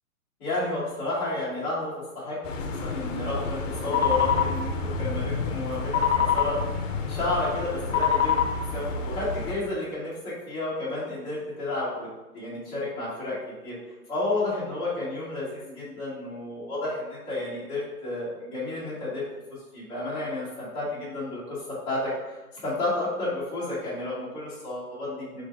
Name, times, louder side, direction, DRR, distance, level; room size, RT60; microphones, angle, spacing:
voice 1, 0.4-2.4 2.8-6.6 7.0-8.4 8.7-12.1 12.3-13.4 13.6-13.8 14.1-19.2 19.7-21.6 21.9-25.4, left 2 dB, 10° left, -11 dB, 0.8 m, -31 dB
sound 1, 2.4-9.5, left 6 dB, 60° left, 0.6 m, -27 dB
4.5 x 2.5 x 3.4 m, 1.1 s
hypercardioid pair, 170°, 45 cm